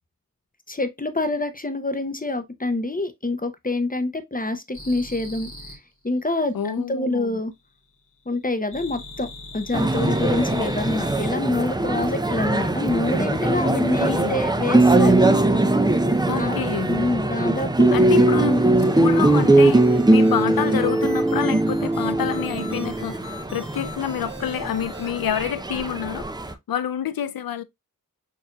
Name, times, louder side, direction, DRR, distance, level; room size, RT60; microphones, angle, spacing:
voice 1, 0.7-5.5 6.0-6.5 6.9-7.5 8.3-9.3 9.5-15.2 16.3-16.6 16.9-18.6, left 2 dB, 25° left, 0.7 m, -26 dB
sound 1, 4.7-5.8 8.7-11.3, left 2 dB, 60° left, 1.5 m, -39 dB
voice 2, 6.5-7.4 13.6-14.4 16.3-16.9 17.9-18.6 19.0-27.6, left 9 dB, 80° left, 0.5 m, -28 dB
sound 2, 9.7-26.5, right 2 dB, 10° right, 0.6 m, -20 dB
sound 3, 18.8-25.1, equal, 70° right, 2.3 m, -40 dB
6.5 x 2.7 x 2.2 m
wide cardioid pair, 50°, 35 cm